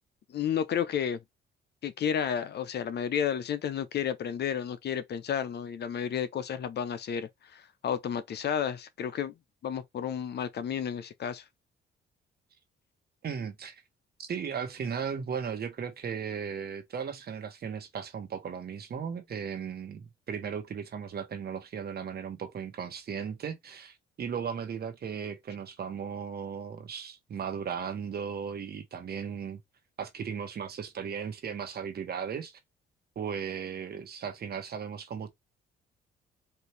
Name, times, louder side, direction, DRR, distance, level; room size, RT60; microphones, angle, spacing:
voice 1, 0.3-1.2 1.8-9.3 9.6-11.4, left 8 dB, 55° left, 0.7 m, -32 dB
voice 2, 13.2-13.7 14.2-29.6 30.0-32.6 33.1-35.3, right 7 dB, 50° right, 1.2 m, -36 dB
4.4 x 2.7 x 3.3 m
cardioid pair, 90°, 20 cm